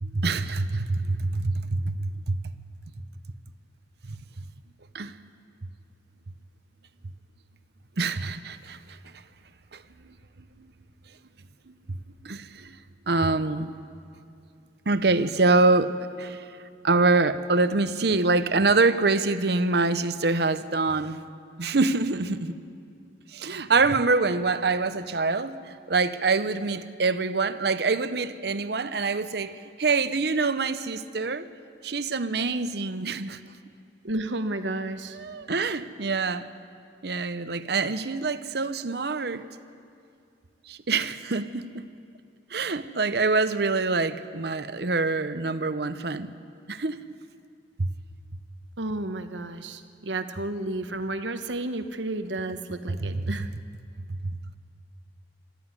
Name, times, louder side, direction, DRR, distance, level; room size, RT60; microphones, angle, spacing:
voice 1, 0.0-2.4 4.0-4.2 4.9-5.2 8.0-9.0 9.7-9.8 11.7-12.0 12.2-12.8 13.1-13.7 14.9-16.4 16.8-21.2 21.6-22.5 23.3-31.5 31.8-33.4 35.1-36.5 37.0-39.4 40.7-41.8 42.5-46.3 46.7-47.0 47.8-47.9 52.9-53.2 54.1-54.3, right 3 dB, 60° right, 0.8 m, -25 dB
voice 2, 34.0-35.2 48.8-53.5, right 2 dB, 85° right, 1.2 m, -32 dB
25.0 x 13.5 x 9.7 m
head